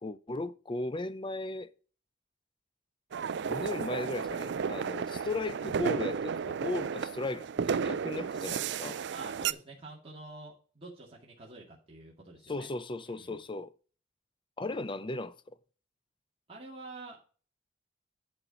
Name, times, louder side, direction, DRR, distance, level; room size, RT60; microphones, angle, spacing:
voice 1, 0.0-1.7 3.4-9.0 12.5-13.7 14.6-15.6, left 2 dB, 25° left, 0.6 m, -36 dB
sound 1, 3.1-9.5, right 6 dB, 65° right, 0.4 m, -33 dB
voice 2, 9.1-12.7 13.1-13.4 16.5-17.2, right 2 dB, 30° right, 2.3 m, -47 dB
11.0 x 4.5 x 5.2 m
head